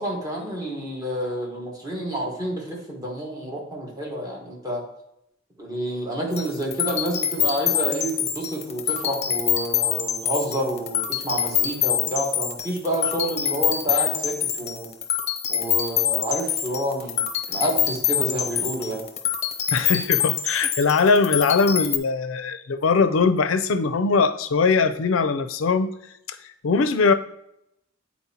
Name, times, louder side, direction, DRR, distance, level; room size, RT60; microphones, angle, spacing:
voice 1, 0.0-4.8 5.6-14.9 15.5-17.2 17.5-19.0, right 1 dB, 20° right, -2 dB, 1.4 m, -29 dB
sound 1, 6.3-22.0, left 9 dB, 35° left, 0.7 m, -25 dB
voice 2, 19.7-25.9 26.3-26.4 26.6-27.1, left 4 dB, 75° left, 10 dB, 0.4 m, -21 dB
9.3 x 4.2 x 2.8 m, 0.81 s
head